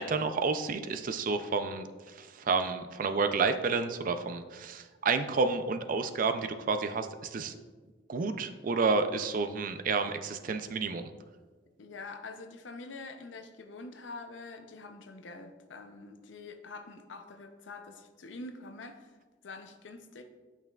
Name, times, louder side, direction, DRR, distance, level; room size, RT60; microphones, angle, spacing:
voice 1, 0.0-7.5 8.1-11.1, right 4 dB, 45° right, 9 dB, 0.4 m, -30 dB
voice 2, 11.8-19.1 19.4-20.3, left 3 dB, 80° left, 7 dB, 0.6 m, -45 dB
8.9 x 5.7 x 2.3 m, 1.3 s
head